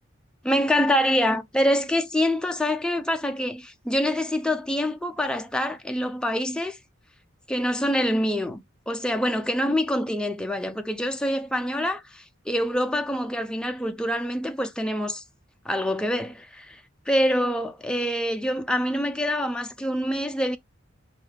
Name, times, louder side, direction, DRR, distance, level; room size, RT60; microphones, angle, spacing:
voice 1, 0.4-6.8 7.5-15.2 15.7-16.8 17.1-20.6, equal, 5° left, 0.5 m, -25 dB
4.9 x 2.7 x 3.5 m
head